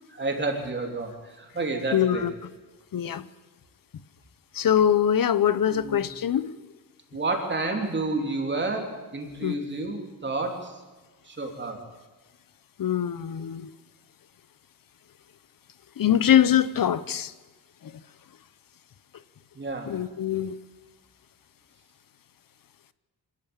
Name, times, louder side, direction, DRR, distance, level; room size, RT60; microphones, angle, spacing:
voice 1, 0.1-2.3 5.7-6.1 7.1-10.8 11.2-11.8 19.5-19.9, right 2 dB, 25° right, 3.6 m, -30 dB
voice 2, 1.9-2.3 2.9-3.2 4.5-6.5 9.4-9.5 12.8-13.7 16.0-17.3 19.9-20.5, left 9 dB, 55° left, 0.9 m, -23 dB
25.5 x 15.0 x 9.0 m
wide cardioid pair, 175°, 40 cm